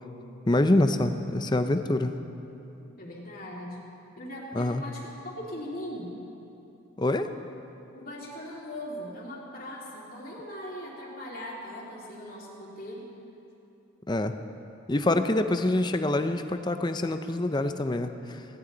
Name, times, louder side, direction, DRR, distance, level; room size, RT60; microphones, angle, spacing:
voice 1, 0.5-2.1 4.5-4.8 7.0-7.3 14.1-14.3 14.9-18.4, left 1 dB, 20° left, 8 dB, 0.6 m, -25 dB
voice 2, 3.0-3.9 4.2-6.1 7.9-13.1, left 1 dB, 45° left, -3 dB, 2.8 m, -39 dB
19.0 x 17.0 x 4.0 m, 2.9 s
head